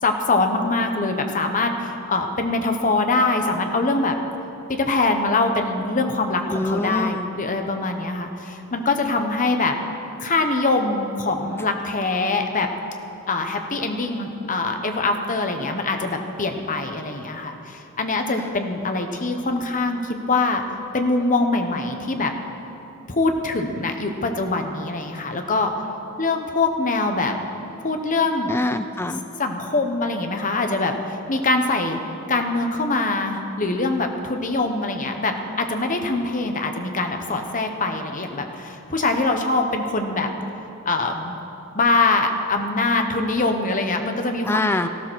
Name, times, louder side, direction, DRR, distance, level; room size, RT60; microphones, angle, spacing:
voice 1, 0.0-4.1 4.7-9.8 10.2-12.7 13.3-20.6 20.9-22.3 23.1-25.7 26.2-27.3 27.8-28.5 29.4-32.0 32.3-40.3 40.8-41.3 41.7-44.6, left 3 dB, 35° left, 5 dB, 1.2 m, -23 dB
voice 2, 6.5-7.3 28.5-29.3 44.5-44.9, left 2 dB, 10° left, 9 dB, 0.4 m, -24 dB
15.5 x 13.0 x 6.4 m, 2.8 s
head